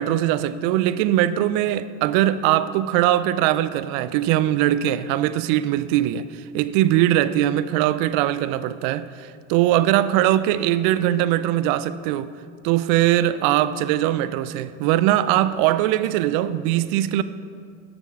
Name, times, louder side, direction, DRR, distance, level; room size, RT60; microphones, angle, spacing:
voice 1, 0.0-12.3 12.6-17.2, right 13 dB, 70° right, 0.5 m, -21 dB
6.9 x 6.8 x 5.9 m
supercardioid pair, 85°, 39 cm